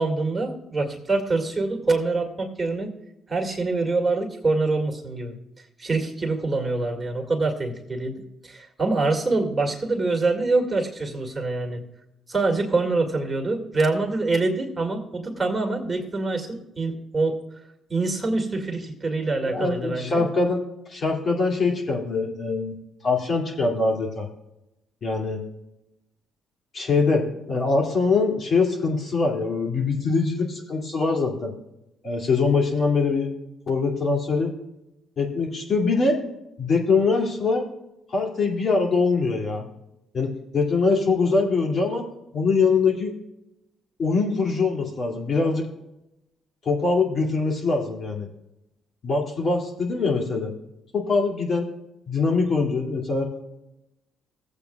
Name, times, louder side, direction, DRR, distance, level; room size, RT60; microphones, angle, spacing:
voice 1, 0.0-2.9 3.3-5.3 5.8-11.8 12.3-17.4 17.9-20.2, right 3 dB, 20° right, 1 dB, 2.1 m, -25 dB
voice 2, 19.5-20.6 20.9-22.8 23.0-24.3 25.0-25.4 26.7-31.5 32.0-33.3 33.7-34.5 35.2-36.2 36.6-37.6 38.1-39.7 40.1-42.0 42.3-43.1 44.0-45.7 46.6-48.3 49.0-50.5 50.9-51.7 52.1-53.3, left 4 dB, 45° left, 0 dB, 2.4 m, -23 dB
17.0 x 8.2 x 2.3 m, 0.90 s
cardioid pair, 90°, 0 cm